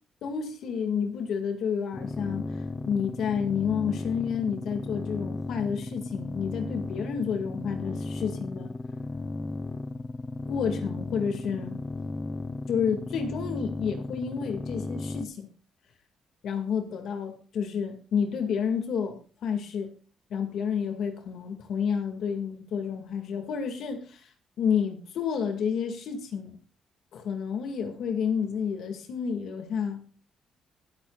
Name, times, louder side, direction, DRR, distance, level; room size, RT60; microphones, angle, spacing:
voice 1, 0.2-2.5 2.9-8.7 10.5-11.8 12.7-15.5 16.4-19.9 20.3-24.3 24.6-26.6 27.1-30.0, left 7 dB, 75° left, 2.2 m, -30 dB
sound 1, 1.9-15.3, left 2 dB, 25° left, 0.8 m, -35 dB
21.0 x 8.4 x 2.5 m
cardioid pair, 90°, 0 cm